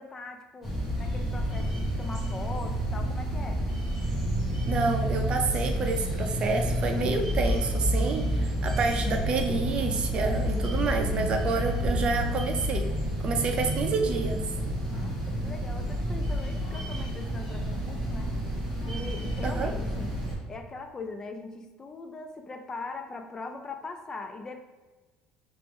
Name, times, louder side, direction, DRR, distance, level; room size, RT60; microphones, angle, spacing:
voice 1, 0.0-3.6 14.9-18.3 18.9-20.2 20.5-24.7, left 3 dB, 25° left, 5 dB, 0.3 m, -41 dB
sound 1, 0.6-20.3, equal, ahead, 1.5 m, -29 dB
voice 2, 4.7-12.9 13.2-14.4 19.4-19.7, right 4 dB, 40° right, 4 dB, 0.6 m, -28 dB
5.6 x 2.6 x 3.4 m, 1.3 s
cardioid pair, 130°, 3 cm